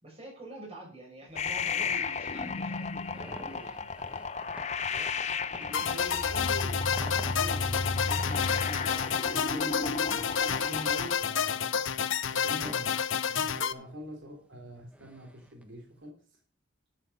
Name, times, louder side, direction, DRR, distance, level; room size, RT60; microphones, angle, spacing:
voice 1, 0.0-4.0 13.6-13.9, right 2 dB, 30° right, -1 dB, 6.4 m, -47 dB
sound 1, 1.3-16.0, equal, 5° right, 1.3 m, -51 dB
sound 2, 1.4-11.1, left 4 dB, 35° left, 0.7 m, -33 dB
voice 2, 5.5-11.9 12.3-13.0 13.3-16.2, equal, 75° right, 1 dB, 3.1 m, -44 dB
sound 3, 5.7-13.7, left 7 dB, 80° left, 0.8 m, -30 dB
11.5 x 8.2 x 5.4 m, 0.41 s
head